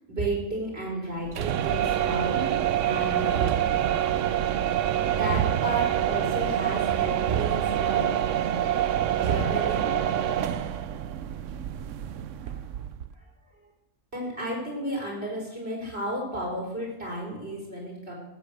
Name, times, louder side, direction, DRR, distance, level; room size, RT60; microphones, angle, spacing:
voice 1, 0.1-2.5 2.8-3.6 5.2-8.1 9.1-9.9 12.4-12.6 14.1-18.2, right 1 dB, 50° right, -3 dB, 5.0 m, -33 dB
sound 1, 1.2-13.1, right 10 dB, 75° right, 1.0 m, -26 dB
15.5 x 8.4 x 6.7 m, 0.99 s
omnidirectional pair, 1.3 m